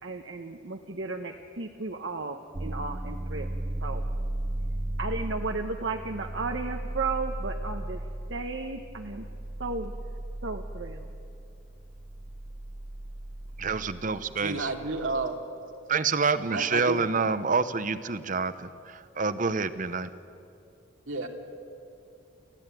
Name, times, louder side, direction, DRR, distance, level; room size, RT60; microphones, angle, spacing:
voice 1, 0.0-3.5 3.8-4.0 5.0-8.0 8.3-9.2 9.6-9.9 10.4-11.0, right 3 dB, 65° right, 4 dB, 1.0 m, -34 dB
sound 1, 2.5-15.3, right 1 dB, 20° right, 0.6 m, -36 dB
voice 2, 13.6-14.7 15.9-20.1, right 4 dB, 40° right, 13 dB, 0.9 m, -27 dB
voice 3, 14.4-15.4 16.5-17.0 21.1-21.3, right 3 dB, 85° right, 3 dB, 2.6 m, -31 dB
30.0 x 15.0 x 9.1 m, 2.7 s
head